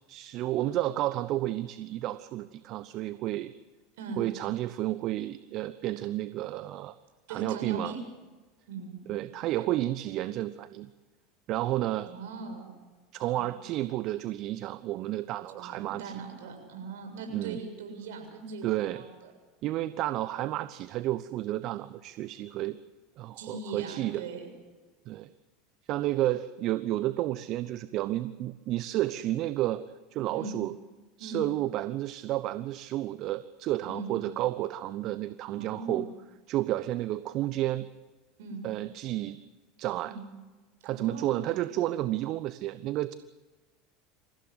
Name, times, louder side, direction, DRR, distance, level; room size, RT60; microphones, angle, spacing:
voice 1, 0.1-3.5 4.2-7.0 7.3-7.9 9.1-10.9 11.5-12.1 13.1-16.2 17.3-17.6 18.6-19.0 19.6-22.8 23.2-24.2 25.1-25.3 25.9-29.8 30.1-30.7 31.2-36.1 36.5-37.9 38.6-39.4 39.8-40.1 40.8-43.1, right 15 dB, 50° right, 14 dB, 0.8 m, -31 dB
voice 2, 7.3-8.0 8.7-9.0 12.1-12.7 13.3-13.7 15.6-19.3 23.4-24.5 30.3-30.5 31.2-31.5 33.9-34.1 35.5-36.1 38.4-38.7 40.0-40.3 40.9-41.5, right 3 dB, 70° right, 4 dB, 7.0 m, -40 dB
27.0 x 16.0 x 8.1 m, 1.3 s
hypercardioid pair, 80°, 0 cm